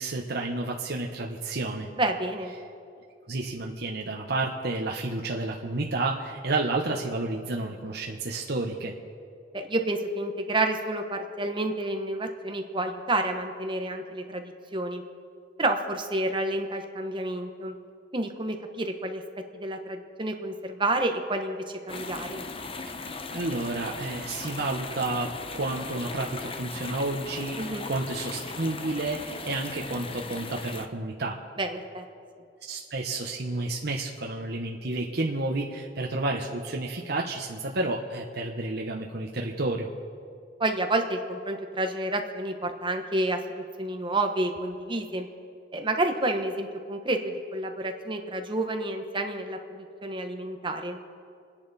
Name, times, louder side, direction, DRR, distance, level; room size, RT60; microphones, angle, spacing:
voice 1, 0.0-1.9 3.3-8.9 23.3-31.4 32.6-39.9, right 2 dB, 60° right, -1 dB, 1.1 m, -31 dB
voice 2, 2.0-2.5 9.5-15.0 15.6-17.7 18.1-19.2 19.5-22.5 27.6-27.9 31.6-32.0 40.6-45.3 45.7-51.0, right 2 dB, 25° right, 5 dB, 1.1 m, -29 dB
sound 1, 21.9-30.9, left 3 dB, 30° left, 0.7 m, -38 dB
28.0 x 10.5 x 4.2 m, 2.4 s
head